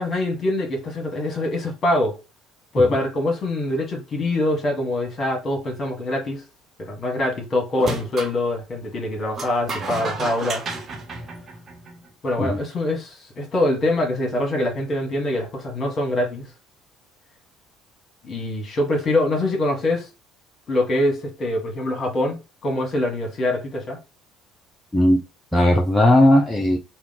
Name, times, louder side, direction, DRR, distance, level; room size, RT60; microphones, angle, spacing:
voice 1, 0.0-2.2 2.7-6.4 6.8-10.6 12.2-16.5 18.2-20.1 20.7-22.4 22.6-24.0, left 1 dB, 40° left, 1.3 m, -24 dB
sound 1, 7.8-8.4 9.3-12.1, right 3 dB, 40° right, 0.8 m, -31 dB
voice 2, 25.5-26.8, left 1 dB, 10° left, 0.6 m, -17 dB
2.8 x 2.2 x 3.9 m
figure-of-eight pair, 55°, 0 cm